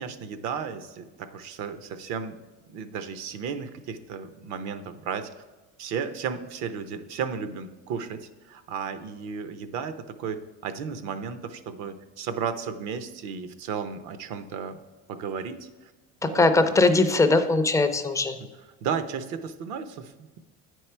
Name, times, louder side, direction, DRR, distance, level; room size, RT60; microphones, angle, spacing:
voice 1, 0.0-2.4 2.7-5.3 5.8-14.8 15.1-15.7 16.2-16.4 18.4-18.5 18.8-20.4, right 6 dB, 65° right, 11 dB, 0.7 m, -34 dB
voice 2, 16.2-18.4, left 3 dB, 10° left, 7 dB, 0.4 m, -20 dB
9.5 x 4.7 x 4.4 m, 1.2 s
cardioid pair, 145°, 30 cm